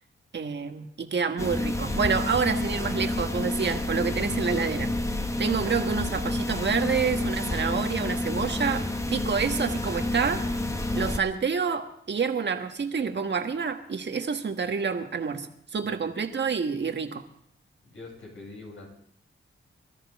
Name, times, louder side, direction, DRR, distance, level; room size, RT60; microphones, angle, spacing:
voice 1, 0.3-4.9 5.4-10.4 10.9-17.2, right 5 dB, 55° right, 6 dB, 1.6 m, -28 dB
sound 1, 1.4-11.2, left 2 dB, 15° left, 1.2 m, -29 dB
voice 2, 17.9-18.9, left 3 dB, 70° left, -1 dB, 7.5 m, -44 dB
23.5 x 13.5 x 3.7 m, 0.71 s
cardioid pair, 85°, 21 cm